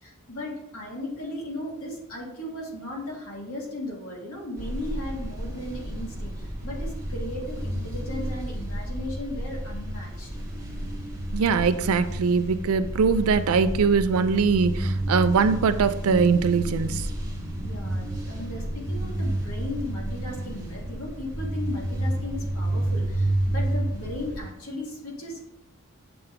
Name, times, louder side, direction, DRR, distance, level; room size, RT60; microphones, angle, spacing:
voice 1, 0.0-10.3 17.6-25.4, left 1 dB, 75° left, -2 dB, 1.7 m, -36 dB
sound 1, 4.6-24.4, right 1 dB, 20° right, 1.8 m, -30 dB
voice 2, 11.3-17.1, right 5 dB, 80° right, 13 dB, 0.4 m, -22 dB
7.8 x 3.4 x 3.5 m, 0.82 s
head